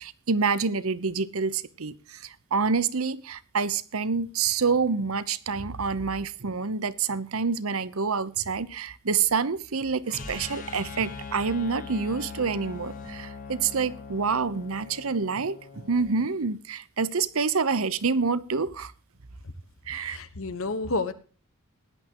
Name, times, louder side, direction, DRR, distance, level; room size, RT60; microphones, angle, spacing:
voice 1, 0.0-2.2 2.5-18.9 19.9-20.2, right 5 dB, 70° right, 0.9 m, -27 dB
sound 1, 10.1-16.2, left 4 dB, 40° left, 1.9 m, -41 dB
voice 2, 19.9-21.1, left 3 dB, 65° left, 1.3 m, -30 dB
17.0 x 11.0 x 3.0 m
head